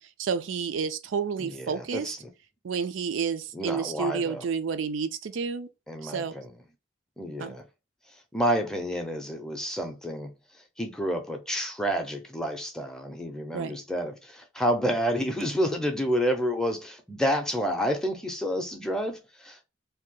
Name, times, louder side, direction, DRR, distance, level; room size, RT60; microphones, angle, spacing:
voice 1, 0.2-2.1 2.6-5.7 6.0-6.4 7.4-7.6 13.5-13.8, right 6 dB, 85° right, 0.4 m, -30 dB
voice 2, 1.4-2.3 3.5-4.4 5.9-6.5 7.2-7.6 8.1-19.6, equal, 5° left, 0.5 m, -29 dB
2.7 x 2.1 x 3.7 m
head